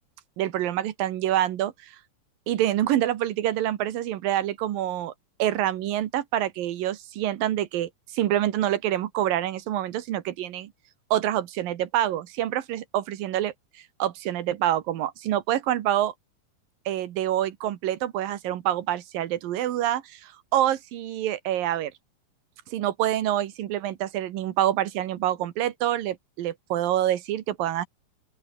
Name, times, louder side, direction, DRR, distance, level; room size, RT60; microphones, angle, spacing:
voice 1, 0.4-2.0 2.5-5.1 5.4-10.7 11.1-13.5 14.0-16.1 16.9-21.9 22.7-27.9, right 12 dB, 85° right, 3.2 m, -26 dB
open air
omnidirectional pair, 3.9 m